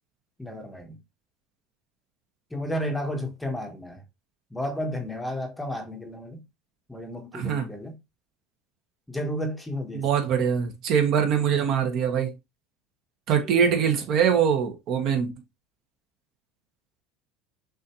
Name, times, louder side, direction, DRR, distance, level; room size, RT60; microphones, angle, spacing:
voice 1, 0.4-1.0 2.5-4.0 4.5-6.4 6.9-8.0 9.1-10.1 13.4-13.9 14.2-14.3, equal, 5° left, 1.0 m, -32 dB
voice 2, 7.3-7.7 9.9-12.3 13.3-15.3, right 7 dB, 50° right, 1.3 m, -23 dB
6.2 x 2.7 x 3.0 m
supercardioid pair, 135°, 0 cm